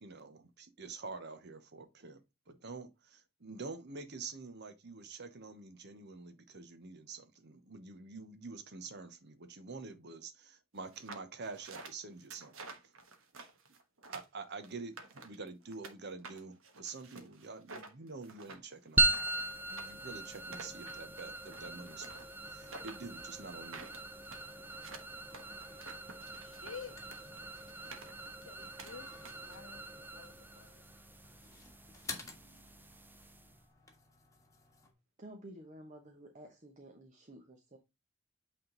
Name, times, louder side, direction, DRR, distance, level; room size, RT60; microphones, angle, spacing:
voice 1, 0.0-12.8 14.1-19.3 19.7-24.0, right 4 dB, 55° right, 1.0 m, -47 dB
sound 1, 10.9-15.9 16.2-29.6, right 3 dB, 75° right, 1.2 m, -51 dB
sound 2, 19.0-33.6, right 2 dB, 10° right, 0.6 m, -39 dB
sound 3, 22.9-34.9, left 3 dB, 15° left, 1.5 m, -54 dB
voice 2, 26.4-27.3 28.5-30.8, left 6 dB, 70° left, 0.7 m, -51 dB
voice 3, 35.2-37.8, right 1 dB, 35° right, 1.1 m, -52 dB
8.5 x 3.7 x 3.9 m
head